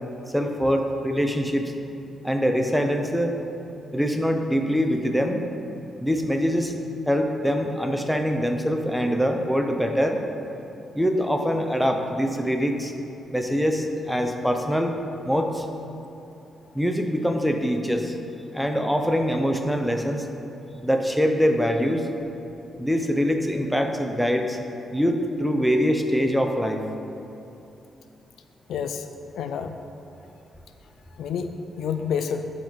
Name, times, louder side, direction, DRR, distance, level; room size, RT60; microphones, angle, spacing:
voice 1, 0.3-1.7 2.2-3.3 3.9-5.5 6.0-6.7 7.1-10.2 10.9-12.9 13.3-14.9 15.2-15.7 16.7-18.2 18.5-20.3 20.8-22.1 22.8-24.6 24.9-26.9, equal, ahead, 4 dB, 0.7 m, -23 dB
voice 2, 28.7-29.1 29.4-29.8 31.2-32.5, left 7 dB, 85° left, 7 dB, 0.4 m, -29 dB
11.5 x 4.1 x 4.7 m, 2.8 s
cardioid pair, 110°, 0 cm